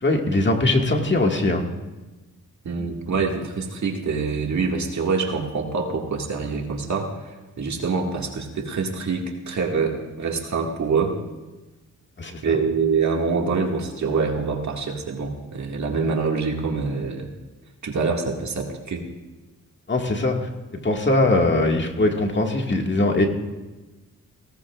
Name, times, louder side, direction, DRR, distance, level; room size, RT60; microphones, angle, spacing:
voice 1, 0.0-1.7 12.2-12.6 19.9-23.3, left 2 dB, 35° left, 2 dB, 1.9 m, -21 dB
voice 2, 2.6-11.2 12.4-17.3 17.8-19.0, right 4 dB, 60° right, 1 dB, 2.1 m, -25 dB
18.5 x 17.0 x 2.5 m, 1.2 s
cardioid pair, 65°, 33 cm